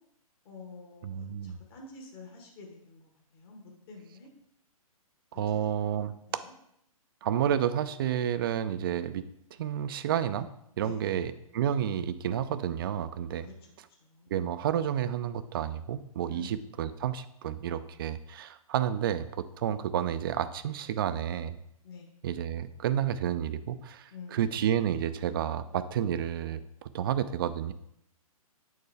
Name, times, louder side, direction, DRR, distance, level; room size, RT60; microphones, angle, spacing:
voice 1, 0.4-4.3 5.5-5.6 5.9-6.0 6.3-6.5 10.8-11.1 13.4-13.5 14.0-14.3 16.3-16.6 21.8-22.1 24.1-24.6, left 4 dB, 40° left, 0 dB, 1.4 m, -48 dB
voice 2, 1.0-1.6 5.3-6.4 7.2-9.2 9.6-10.5 10.8-13.5 14.3-21.6 22.2-27.7, right 10 dB, 40° right, 13 dB, 0.4 m, -30 dB
8.3 x 4.6 x 3.3 m, 0.77 s
hypercardioid pair, 145°, 19 cm